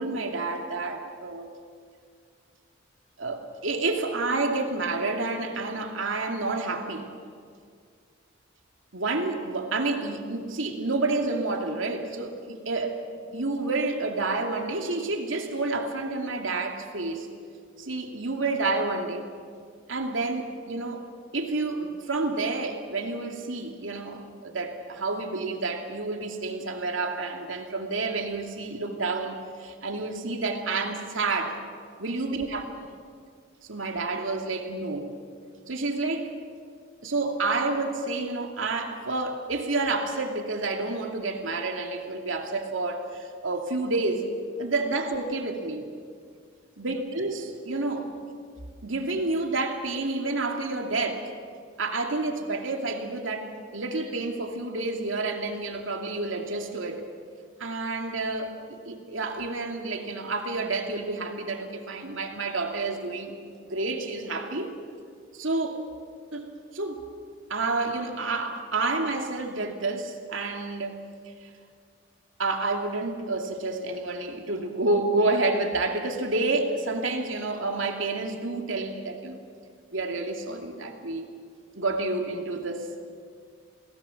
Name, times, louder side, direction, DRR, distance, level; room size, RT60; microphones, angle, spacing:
voice 1, 0.0-1.5 3.2-7.1 8.9-12.9 13.3-17.3 17.8-19.3 19.9-21.0 21.3-31.6 32.0-32.6 33.7-35.1 35.7-36.3 37.0-44.3 44.6-45.9 46.8-48.1 48.8-51.3 51.8-57.0 57.6-63.3 63.7-64.7 65.3-65.8 66.3-67.0 67.5-71.0 72.4-79.4 79.9-81.3 81.7-83.0, right 3 dB, 85° right, 3 dB, 2.7 m, -29 dB
29.0 x 18.5 x 7.3 m, 2.1 s
head